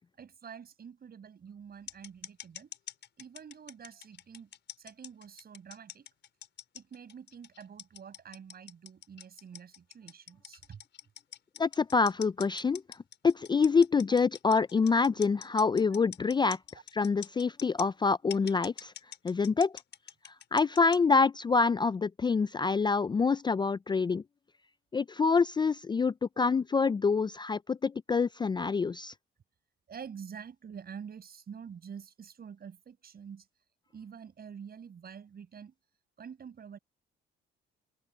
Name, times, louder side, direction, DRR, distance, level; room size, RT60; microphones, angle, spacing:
voice 1, 0.2-2.7 3.2-4.5 4.8-6.1 6.7-10.8 15.9-16.0 26.4-26.5 29.9-33.5 33.9-35.7 36.2-36.8, right 7 dB, 50° right, 7.1 m, -47 dB
sound 1, 1.9-17.9 18.3-21.0, left 10 dB, 65° left, 5.2 m, -45 dB
voice 2, 11.6-12.8 13.2-16.6 16.9-18.9 19.2-19.7 20.5-24.2 24.9-29.1, left 4 dB, 20° left, 0.4 m, -26 dB
open air
cardioid pair, 90°, 20 cm